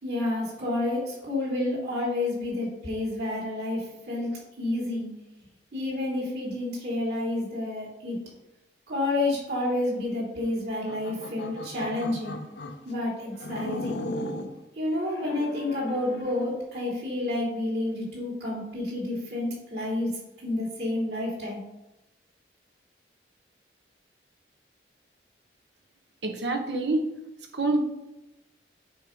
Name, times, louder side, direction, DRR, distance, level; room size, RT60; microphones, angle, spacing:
voice 1, 0.0-4.3 4.6-5.1 5.7-8.2 8.9-12.4 12.8-14.0 14.7-20.1 20.4-21.6, left 2 dB, 70° right, -5 dB, 3.4 m, -29 dB
sound 1, 10.7-12.8 13.4-14.6 15.1-16.5, left 1 dB, 80° left, 0.8 m, -37 dB
voice 2, 26.2-27.0 27.5-27.8, right 2 dB, 85° right, 3 dB, 1.4 m, -26 dB
8.6 x 4.5 x 5.6 m, 0.95 s
head